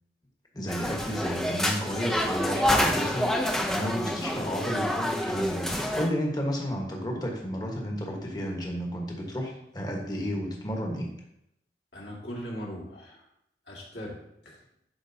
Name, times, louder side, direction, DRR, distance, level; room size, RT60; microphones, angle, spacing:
voice 1, 0.5-11.1, equal, 20° left, 0 dB, 1.2 m, -32 dB
sound 1, 0.7-6.1, equal, 5° left, 0.5 m, -28 dB
voice 2, 11.9-13.3 13.7-14.2 14.4-14.6, equal, 70° left, -4 dB, 2.1 m, -39 dB
11.0 x 4.4 x 2.7 m, 0.79 s
head